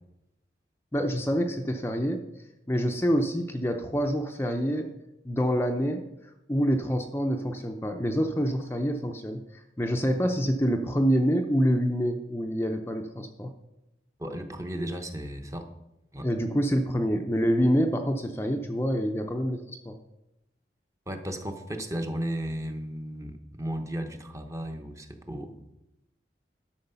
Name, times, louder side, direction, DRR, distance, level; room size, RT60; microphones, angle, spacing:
voice 1, 0.9-2.2 2.7-4.9 5.2-6.1 6.5-13.5 16.2-20.0, equal, 15° left, 4 dB, 0.6 m, -26 dB
voice 2, 14.2-15.7 16.1-16.3 21.1-25.7, right 1 dB, 20° right, 5 dB, 0.9 m, -35 dB
12.0 x 6.4 x 5.5 m, 0.92 s
head